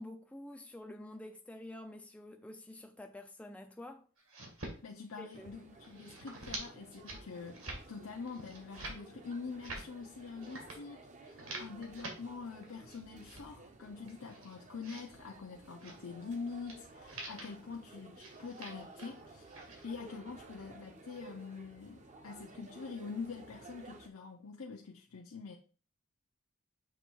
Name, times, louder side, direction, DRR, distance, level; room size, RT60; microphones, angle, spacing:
voice 1, 0.0-4.1 5.2-5.5, left 1 dB, 5° left, 0.3 m, -48 dB
sound 1, 4.2-4.8 5.1-5.5 5.8-6.6 6.9-7.2 7.5-7.8 8.3-9.0 9.4-9.9 10.4-10.8 11.2-12.1 12.6-13.4 14.0-15.0 15.8-16.0 16.7-16.8 17.1-17.5 18.2-19.1 19.4-19.9, right 2 dB, 70° right, 1.8 m, -46 dB
voice 2, 4.8-25.6, left 5 dB, 80° left, 0.7 m, -45 dB
sound 2, 5.3-24.1, right 2 dB, 35° right, 0.7 m, -55 dB
7.0 x 3.0 x 4.6 m
head